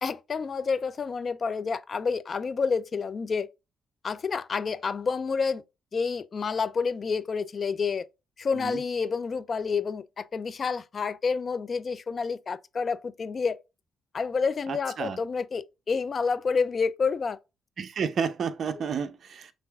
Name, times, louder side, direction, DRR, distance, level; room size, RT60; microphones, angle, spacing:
voice 1, 0.0-3.5 4.0-5.6 5.9-8.0 8.4-13.6 14.1-17.4 18.8-18.9, left 5 dB, 40° left, 0.4 m, -29 dB
voice 2, 14.7-15.2 17.8-19.5, right 6 dB, 55° right, 0.6 m, -31 dB
5.4 x 3.3 x 2.4 m
cardioid pair, 90°, 0 cm